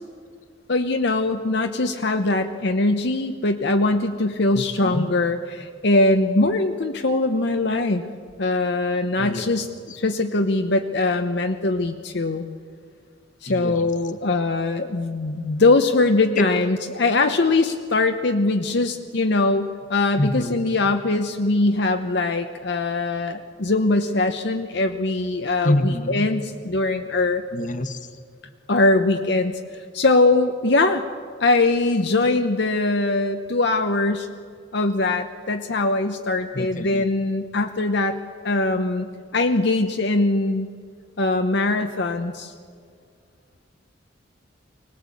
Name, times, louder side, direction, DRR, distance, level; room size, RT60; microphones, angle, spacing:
voice 1, 0.7-8.0 8.4-12.5 13.4-27.4 28.7-29.6 29.9-31.0 31.4-34.3 34.7-38.2 38.4-39.1 39.3-40.7 41.2-42.5, left 2 dB, 60° left, 5 dB, 0.9 m, -21 dB
voice 2, 4.5-5.0 9.2-9.5 9.9-10.0 13.5-13.9 16.4-16.5 20.2-20.6 25.6-26.3 27.5-28.1 36.5-37.0, left 1 dB, 45° left, 9 dB, 1.3 m, -26 dB
24.0 x 18.5 x 8.5 m, 2.1 s
head